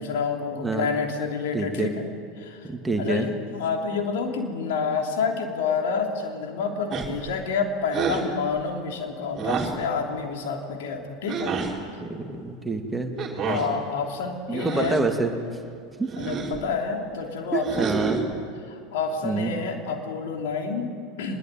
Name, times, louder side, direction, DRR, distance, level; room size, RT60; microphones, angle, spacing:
voice 1, 0.0-2.1 2.4-2.7 3.0-11.5 13.4-15.0 16.2-18.2 18.7-21.4, left 5 dB, 60° left, 3 dB, 3.1 m, -29 dB
voice 2, 0.6-0.9 1.5-1.9 2.6-3.3 12.0-13.1 14.5-15.3 16.0-16.1 17.5-18.2 19.2-19.5, right 3 dB, 10° right, 4 dB, 2.4 m, -27 dB
sound 1, 6.9-7.3 7.9-8.3 9.3-9.8 11.3-11.7 13.2-13.7 14.5-15.1 16.1-16.6 17.6-18.3, right 5 dB, 30° right, 4.0 m, -28 dB
23.5 x 21.5 x 9.2 m, 2.5 s
figure-of-eight pair, 80°, 0 cm